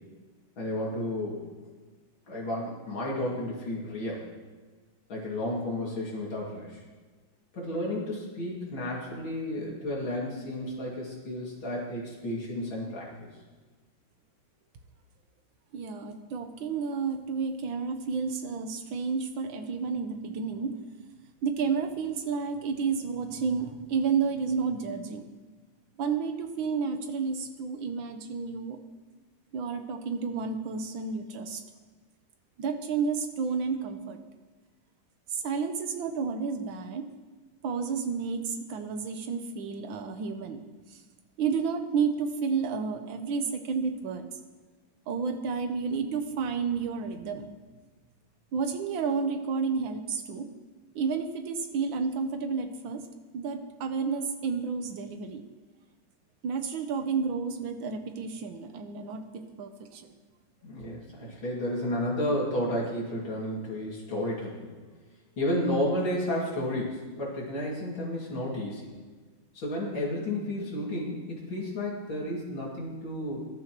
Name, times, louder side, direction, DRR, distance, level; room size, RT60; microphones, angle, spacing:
voice 1, 0.6-1.5 2.3-4.2 5.1-6.8 7.5-13.3 60.6-64.6 65.4-68.9 69.5-73.4, left 1 dB, 70° left, -4 dB, 3.3 m, -32 dB
voice 2, 15.7-20.7 21.4-25.3 26.0-28.8 29.5-31.6 32.6-34.2 35.4-37.0 37.6-40.6 41.4-44.3 45.1-47.5 48.5-50.5 51.0-53.0 53.3-55.4 56.4-60.1, right 5 dB, 70° right, 7 dB, 1.7 m, -31 dB
20.0 x 12.0 x 3.1 m, 1.3 s
omnidirectional pair, 2.2 m